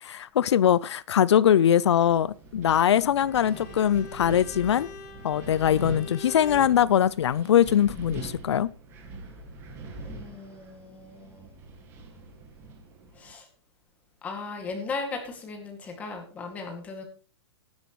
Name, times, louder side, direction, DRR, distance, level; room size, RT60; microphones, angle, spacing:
voice 1, 0.0-4.9 5.2-8.7, left 10 dB, 85° left, 0.6 m, -22 dB
Wind, 1.8-13.3, right 3 dB, 15° right, 1.8 m, -43 dB
Bowed string instrument, 3.1-6.8, left 5 dB, 40° left, 1.6 m, -45 dB
voice 2, 10.0-11.5 13.1-13.5 14.2-17.1, left 4 dB, 10° left, 2.2 m, -37 dB
18.5 x 10.5 x 3.1 m
hypercardioid pair, 175°, 14 cm